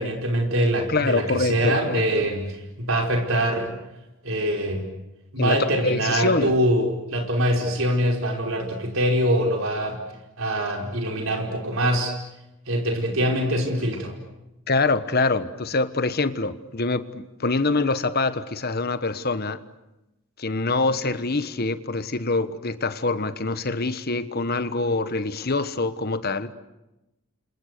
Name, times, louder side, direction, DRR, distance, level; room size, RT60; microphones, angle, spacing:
voice 1, 0.0-3.7 4.2-4.8 5.3-10.0 10.4-12.1 12.7-14.1, right 1 dB, 65° right, 5.0 m, -24 dB
voice 2, 0.9-2.3 5.4-6.5 14.7-19.6 20.4-26.5, left 3 dB, 45° left, 1.2 m, -25 dB
30.0 x 27.0 x 6.7 m
head